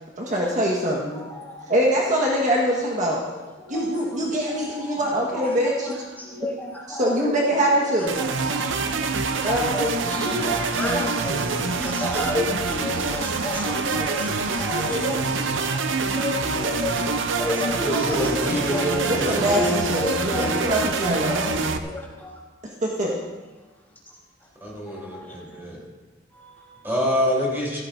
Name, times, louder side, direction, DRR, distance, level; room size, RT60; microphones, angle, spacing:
voice 1, 0.3-1.2 1.7-3.2 3.7-6.0 6.9-8.2 9.4-9.6 19.0-21.5 22.8-23.2, equal, 40° right, -3 dB, 1.6 m, -23 dB
voice 2, 1.1-1.5 3.7-3.8 4.5-19.3 19.6-20.7 21.0-22.3 24.9-25.4 26.3-26.8, left 2 dB, 10° left, -5 dB, 3.3 m, -31 dB
sound 1, 8.1-21.8, right 4 dB, 70° right, 0.7 m, -26 dB
voice 3, 17.8-19.9 24.6-25.8 26.8-27.8, equal, 10° right, -4 dB, 3.9 m, -26 dB
16.0 x 14.0 x 2.7 m, 1.2 s
head